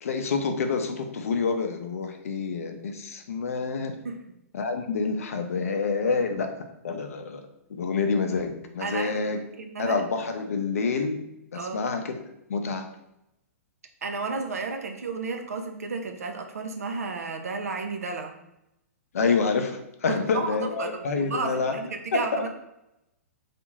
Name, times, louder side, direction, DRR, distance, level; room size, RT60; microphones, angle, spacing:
voice 1, 0.0-4.0 4.5-7.4 7.7-9.4 9.8-11.2 11.5-12.2 12.5-12.8 19.1-21.8 22.1-22.4, left 4 dB, 70° left, 6 dB, 0.5 m, -27 dB
voice 2, 8.8-10.0 11.5-11.8 14.0-18.3 20.1-22.5, right 4 dB, 80° right, 4 dB, 0.5 m, -33 dB
3.4 x 2.5 x 3.0 m, 0.85 s
hypercardioid pair, 120°, 8 cm